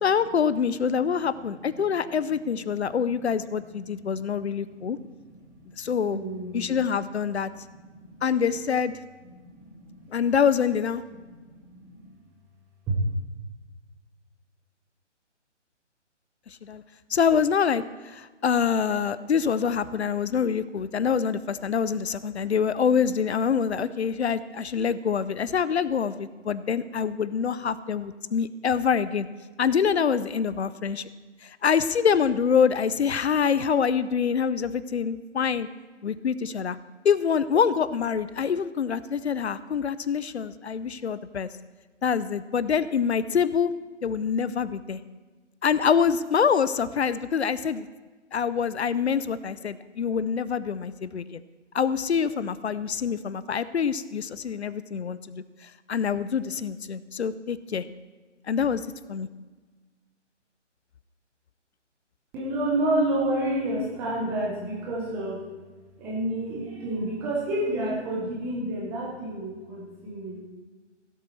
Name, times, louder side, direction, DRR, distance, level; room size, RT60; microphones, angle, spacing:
voice 1, 0.0-5.0 5.8-6.2 6.5-7.5 8.2-8.9 10.1-11.0 16.5-16.8 17.1-29.3 29.6-31.1 31.4-35.7 36.0-36.8 37.0-41.5 42.0-43.7 44.0-45.0 45.6-47.9 48.3-51.4 51.7-57.8 58.5-58.8 59.1-59.3, left 7 dB, 65° left, 16 dB, 0.6 m, -25 dB
voice 2, 6.0-6.6 7.9-8.2 9.4-10.0 11.4-12.1 12.9-13.0 62.3-65.4 66.0-70.4, right 1 dB, 5° right, -4 dB, 0.6 m, -29 dB
16.5 x 7.3 x 4.4 m, 1.3 s
figure-of-eight pair, 145°, 36 cm